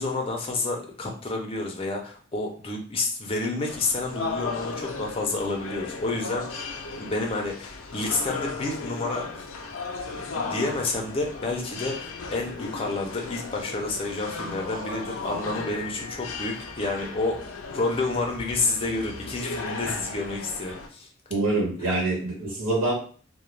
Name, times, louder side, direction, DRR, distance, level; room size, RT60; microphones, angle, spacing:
voice 1, 0.0-6.7 7.0-9.5 10.1-17.4 17.7-21.1 21.8-21.9, left 3 dB, 30° left, 0 dB, 0.5 m, -29 dB
sound 1, 3.7-20.9, left 4 dB, 85° left, 0.4 m, -36 dB
voice 2, 21.3-22.9, right 2 dB, 90° right, -4 dB, 1.1 m, -25 dB
2.3 x 2.2 x 3.1 m, 0.43 s
head